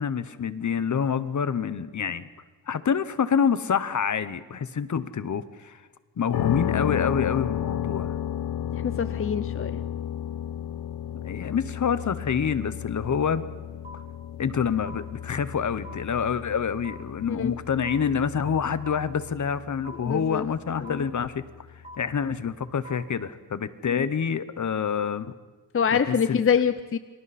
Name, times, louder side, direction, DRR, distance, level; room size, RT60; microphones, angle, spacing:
voice 1, 0.0-2.3 2.7-5.8 6.2-8.1 11.2-13.4 14.4-21.4 22.0-25.3 25.9-26.4, left 7 dB, 55° left, 14 dB, 1.0 m, -27 dB
sound 1, 6.3-22.2, left 10 dB, 75° left, 0.8 m, -33 dB
voice 2, 8.7-9.7 17.3-17.5 20.0-20.4 20.8-21.0 23.9-24.1 25.7-27.0, left 7 dB, 35° left, 11 dB, 0.6 m, -25 dB
sound 2, 13.8-13.9 14.8-14.9 15.8-15.9 16.8-16.9 17.8-17.9 18.8-18.9 19.8-19.9 20.8-20.9 21.8-21.9 22.8-22.9, equal, 20° right, 5.9 m, -42 dB
29.0 x 25.0 x 4.2 m, 1.4 s
wide cardioid pair, 135°, 36 cm